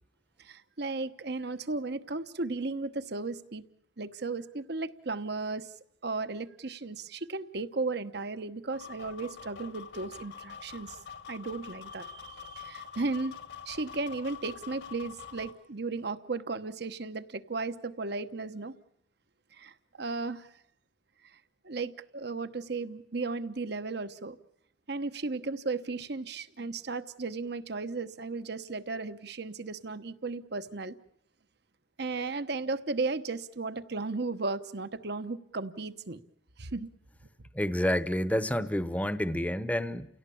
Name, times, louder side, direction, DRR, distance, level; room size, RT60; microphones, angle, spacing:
voice 1, 0.4-3.6 4.0-5.7 6.0-11.0 11.3-13.3 13.7-18.7 19.5-20.5 21.6-24.4 24.9-30.9 32.0-36.2 36.6-36.9, right 3 dB, 65° right, 1.1 m, -35 dB
sound 1, 8.7-15.5, left 7 dB, 70° left, 2.1 m, -46 dB
voice 2, 37.5-40.1, left 1 dB, 10° left, 0.9 m, -29 dB
29.5 x 17.0 x 8.6 m
head